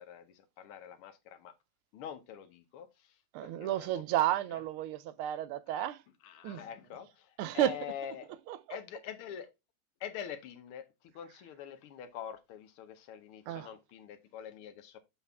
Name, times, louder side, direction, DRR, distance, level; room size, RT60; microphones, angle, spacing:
voice 1, 0.0-1.5 1.9-3.2 3.4-4.0 4.5-4.6 5.7-5.9 6.2-8.3 8.7-9.5 10.0-15.0, left 9 dB, 90° left, 1.8 m, -45 dB
voice 2, 3.3-6.0 6.4-6.6 7.4-7.8 8.5-8.8 13.5-13.7, right 13 dB, 85° right, 1.5 m, -32 dB
7.0 x 5.8 x 3.4 m
omnidirectional pair, 2.3 m